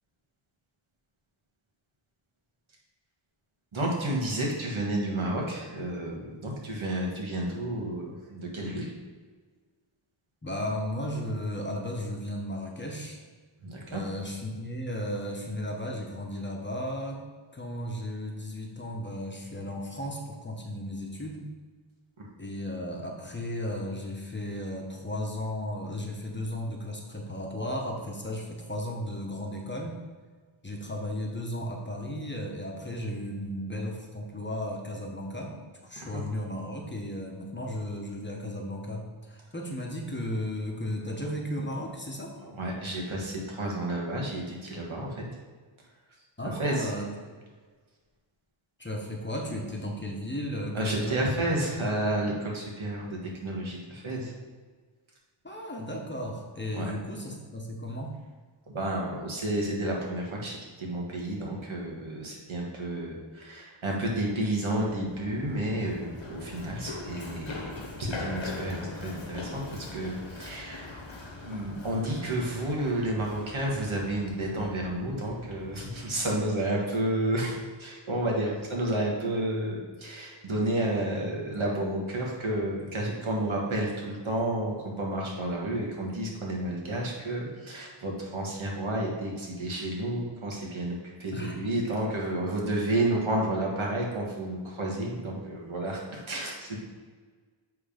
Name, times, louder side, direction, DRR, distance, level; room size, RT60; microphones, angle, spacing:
voice 1, 3.7-8.9 13.6-14.0 22.2-22.3 36.1-36.2 42.4-45.2 46.6-46.9 50.7-53.1 53.4-54.3 56.7-56.9 58.7-71.0 71.4-96.8, right 1 dB, 70° right, -2 dB, 1.7 m, -31 dB
voice 2, 10.4-13.2 13.9-21.4 22.4-30.0 30.6-35.5 35.8-42.3 46.4-47.3 48.8-51.3 55.4-58.1 91.3-91.6, left 1 dB, 20° left, 0 dB, 1.1 m, -35 dB
Run, 64.8-76.4, left 3 dB, 65° left, 1.2 m, -41 dB
7.8 x 3.6 x 5.2 m, 1.5 s
wide cardioid pair, 85°, 49 cm